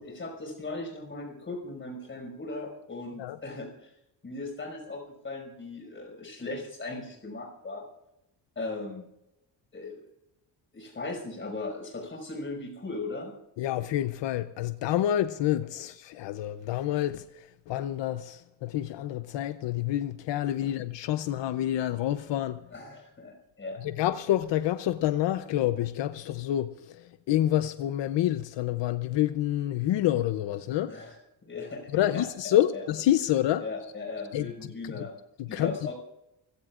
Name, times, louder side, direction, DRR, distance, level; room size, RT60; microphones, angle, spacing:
voice 1, 0.0-3.9 4.2-7.8 8.6-9.1 9.7-10.0 10.7-13.4 20.6-20.7 22.7-23.8 30.9-32.3 32.7-32.8 33.6-35.1 35.5-35.9, left 3 dB, 25° left, 5.8 m, -38 dB
voice 2, 13.6-22.6 23.8-30.9 31.9-33.6 34.3-34.5 34.8-35.1 35.4-35.7, left 12 dB, 80° left, 0.8 m, -28 dB
28.0 x 16.5 x 2.5 m
cardioid pair, 145°, 43 cm